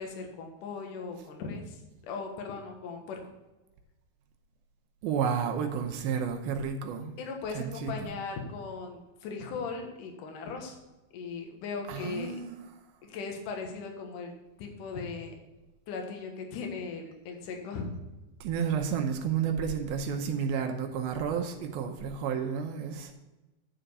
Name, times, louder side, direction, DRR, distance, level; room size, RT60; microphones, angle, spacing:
voice 1, 0.0-3.2 7.2-10.8 11.1-12.4 13.0-14.3 14.6-15.3 15.9-17.9, left 4 dB, 65° left, 2 dB, 2.7 m, -38 dB
voice 2, 5.0-7.1 7.5-8.1 11.9-12.6 18.4-23.1, right 7 dB, 80° right, 3 dB, 2.6 m, -31 dB
10.0 x 5.1 x 6.7 m, 1.1 s
omnidirectional pair, 4.4 m